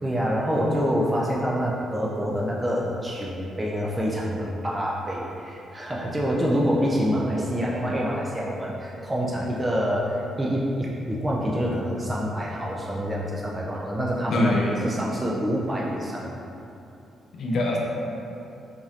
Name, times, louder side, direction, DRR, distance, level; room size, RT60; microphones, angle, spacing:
voice 1, 0.0-14.5 14.8-16.4, equal, 20° right, -4 dB, 0.4 m, -26 dB
voice 2, 14.3-14.8 17.3-17.8, left 1 dB, 65° left, -1 dB, 0.5 m, -23 dB
3.0 x 2.5 x 2.7 m, 2.8 s
supercardioid pair, 65°, 0 cm